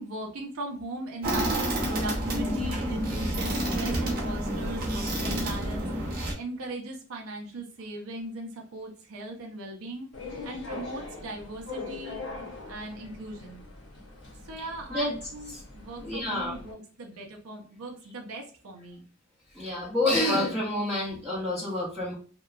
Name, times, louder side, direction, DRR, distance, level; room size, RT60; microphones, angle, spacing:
voice 1, 0.0-10.1 10.4-12.2 12.7-13.6 14.4-19.0, right 2 dB, 80° right, 1 dB, 0.6 m, -39 dB
sound 1, 1.2-6.3, right 1 dB, 45° right, 0.8 m, -29 dB
sound 2, 10.1-16.7, left 3 dB, 60° left, 0.8 m, -42 dB
voice 2, 14.6-15.2 15.5-15.6 16.0-16.6 19.5-22.1, left 1 dB, 5° right, -7 dB, 0.6 m, -28 dB
2.8 x 2.2 x 2.3 m, 0.41 s
head